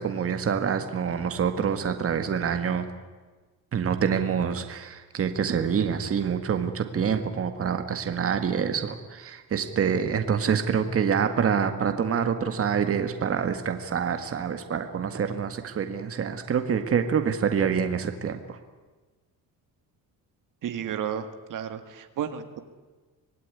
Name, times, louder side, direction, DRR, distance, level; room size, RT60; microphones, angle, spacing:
voice 1, 0.0-2.8 3.7-18.6, right 7 dB, 40° right, 7 dB, 1.9 m, -26 dB
voice 2, 20.6-22.6, right 8 dB, 60° right, 8 dB, 1.9 m, -32 dB
25.5 x 19.0 x 9.7 m, 1.3 s
cardioid pair, 150°, 37 cm